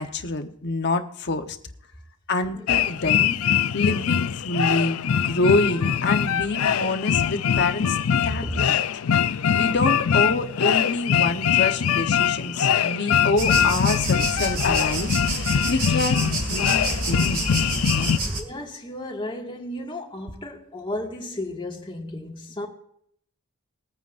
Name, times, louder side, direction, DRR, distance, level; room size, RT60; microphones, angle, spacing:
voice 1, 0.0-1.6 2.3-3.4 3.7-8.0 8.2-8.8 9.2-9.3 9.5-17.5 17.9-18.1, left 3 dB, 50° left, 1.1 m, -26 dB
sound 1, 2.7-18.2, left 8 dB, 70° left, 0.5 m, -23 dB
voice 2, 8.2-8.6 18.3-22.7, left 1 dB, 25° left, 1.9 m, -33 dB
sound 2, 13.4-18.4, right 2 dB, 40° right, 2.4 m, -28 dB
21.5 x 9.1 x 2.6 m
head